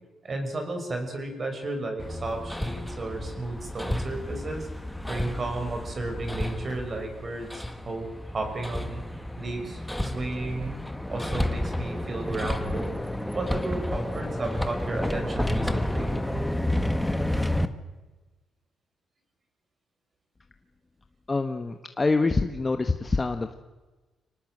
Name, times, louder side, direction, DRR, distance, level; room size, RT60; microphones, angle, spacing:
voice 1, 0.2-4.7 5.1-9.0 9.4-10.8 11.1-13.0 13.3-16.2, right 2 dB, 35° right, 5 dB, 6.1 m, -33 dB
Hammer, 2.0-17.7, left 1 dB, 5° left, 1.5 m, -31 dB
voice 2, 21.3-23.6, left 3 dB, 25° left, 7 dB, 1.2 m, -25 dB
25.0 x 18.5 x 7.9 m, 1.2 s
cardioid pair, 90°, 0 cm